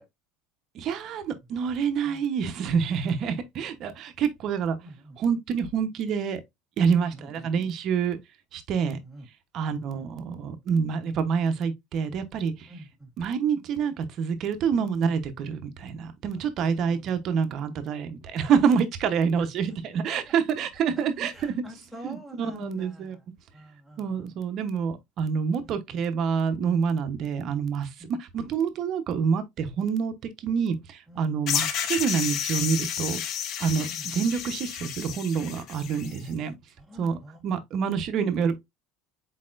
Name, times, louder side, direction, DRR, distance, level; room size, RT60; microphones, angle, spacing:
voice 1, 0.7-4.8 5.2-6.4 6.8-8.2 8.5-9.0 9.5-12.7 13.2-21.6 22.0-23.2 24.0-27.9 28.3-33.2 33.6-36.5 37.0-37.2 37.4-38.5, right 6 dB, 50° right, 0.9 m, -27 dB
voice 2, 4.8-5.2 6.9-7.5 8.9-9.3 9.7-10.1 11.0-11.2 12.7-13.1 16.3-17.2 19.3-19.5 20.0-20.3 21.3-23.3 23.5-24.4 25.6-25.8 28.0-28.1 31.1-31.3 33.9-34.3 36.0-36.3 36.8-37.4, equal, 5° left, 1.9 m, -46 dB
sound 1, 31.5-36.2, left 9 dB, 55° left, 0.7 m, -31 dB
4.2 x 4.1 x 2.5 m
supercardioid pair, 110°, 0 cm